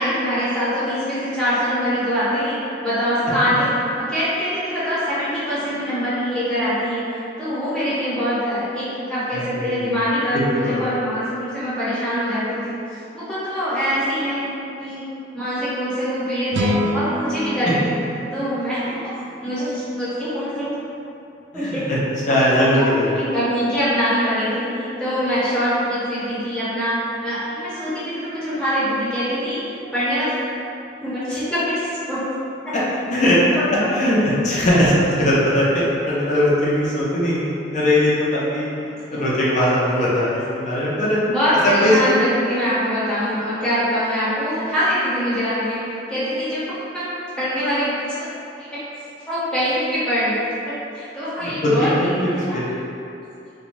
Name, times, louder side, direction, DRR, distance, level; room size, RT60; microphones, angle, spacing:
voice 1, 0.0-12.8 13.1-15.1 15.3-18.0 18.3-19.0 19.4-20.7 21.5-21.9 22.6-30.4 31.0-32.2 32.6-32.7 33.6-33.9 39.1-39.2 41.3-47.1 47.4-48.3 48.7-48.8 49.2-50.4 50.6-52.6, equal, 5° left, -13 dB, 0.9 m, -23 dB
voice 2, 9.3-9.9 10.5-10.7 21.5-22.0 22.3-23.0 33.1-33.4 33.9-38.7 39.1-41.2 41.6-41.9 51.4-52.7, left 1 dB, 40° left, -7 dB, 0.6 m, -20 dB
sound 1, 16.5-19.8, equal, 85° right, 0.3 m, -27 dB
3.0 x 2.3 x 2.5 m, 2.7 s
head